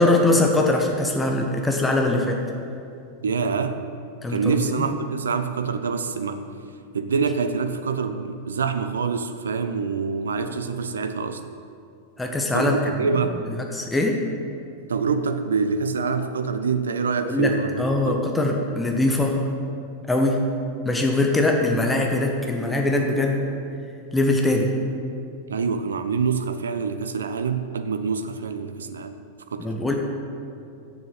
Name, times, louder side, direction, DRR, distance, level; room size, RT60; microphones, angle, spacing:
voice 1, 0.0-2.4 4.2-4.9 12.2-12.8 13.7-14.2 17.2-19.4 20.1-20.5 20.8-23.4 24.1-24.7 29.6-30.0, left 2 dB, 10° left, 1 dB, 1.1 m, -22 dB
voice 2, 3.2-3.8 4.3-6.5 6.9-11.4 12.5-13.4 14.9-18.2 25.5-29.2 29.5-29.7, right 5 dB, 70° right, 9 dB, 0.5 m, -26 dB
7.7 x 7.2 x 8.4 m, 2.5 s
figure-of-eight pair, 90°, 0 cm